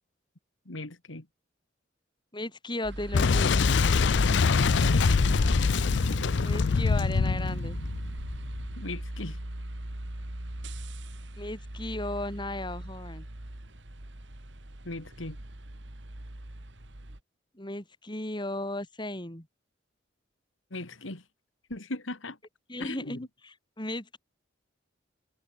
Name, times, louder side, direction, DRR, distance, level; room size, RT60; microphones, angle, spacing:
voice 1, 0.7-1.3 4.5-5.2 8.8-9.4 14.8-15.4 20.7-21.2 21.7-22.4 22.8-23.3, left 2 dB, 75° left, 2.4 m, -38 dB
voice 2, 2.3-3.5 6.4-7.8 11.3-13.3 17.6-19.5 22.7-24.2, left 1 dB, 25° left, 3.8 m, -36 dB
sound 1, 2.8-17.2, right 1 dB, 65° right, 2.3 m, -38 dB
Boom, 3.1-8.7, left 5 dB, 60° left, 0.5 m, -24 dB
head